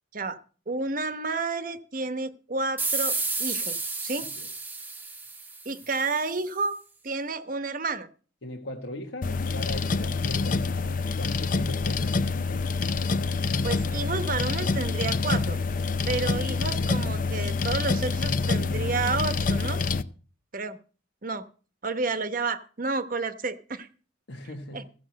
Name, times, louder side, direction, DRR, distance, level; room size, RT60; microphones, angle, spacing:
voice 1, 0.7-4.3 5.6-6.8 7.0-8.1 13.6-15.6 16.1-19.8 20.5-20.8 21.2-21.4 21.8-23.9 24.7-24.8, right 3 dB, 45° right, 1.0 m, -30 dB
sound 1, 2.8-6.1, right 3 dB, 10° right, 1.0 m, -31 dB
voice 2, 8.4-12.4 24.3-24.9, left 1 dB, 70° left, 1.4 m, -39 dB
sound 2, 9.2-20.0, left 4 dB, 45° left, 0.6 m, -27 dB
15.0 x 6.1 x 7.6 m
head